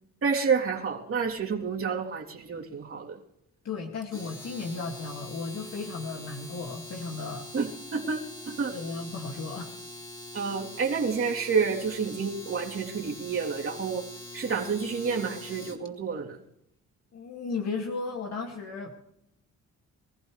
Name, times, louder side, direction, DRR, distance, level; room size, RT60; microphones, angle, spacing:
voice 1, 0.2-3.2 7.5-8.7 10.3-14.1 14.3-16.4, right 5 dB, 45° right, -1 dB, 3.3 m, -29 dB
voice 2, 3.6-7.5 8.7-9.8 17.1-18.9, left 4 dB, 60° left, 1 dB, 2.3 m, -35 dB
Domestic sounds home sounds, 4.0-15.9, left 1 dB, 15° left, 3.9 m, -43 dB
25.0 x 15.0 x 3.3 m, 0.77 s
cardioid pair, 90°, 30 cm